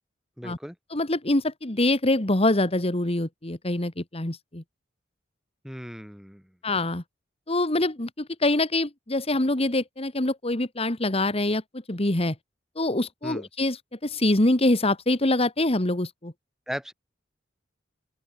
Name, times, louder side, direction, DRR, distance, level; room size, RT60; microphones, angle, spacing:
voice 1, 0.4-0.8 5.6-6.6 13.2-13.5 16.7-16.9, equal, 5° right, 3.0 m, -37 dB
voice 2, 0.9-4.6 6.6-7.0 7.5-11.6 11.9-12.4 12.8-13.8 14.0-16.3, left 2 dB, 35° left, 2.0 m, -24 dB
open air
head